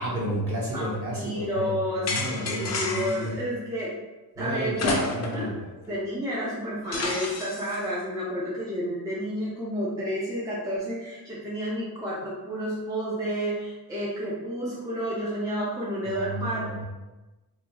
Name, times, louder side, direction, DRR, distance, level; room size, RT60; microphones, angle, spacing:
voice 1, 0.0-3.4 4.4-5.6 16.0-16.8, right 1 dB, 35° right, -5 dB, 1.0 m, -32 dB
voice 2, 1.1-2.1 2.4-3.9 4.4-5.0 5.3-5.5 5.9-16.6, equal, 10° right, -7 dB, 0.5 m, -30 dB
sound 1, 2.1-3.3 4.8-5.5 5.9-6.0 6.9-7.8, left 3 dB, 40° left, 0.5 m, -30 dB
2.7 x 2.3 x 4.1 m, 1.1 s
wide cardioid pair, 145°, 39 cm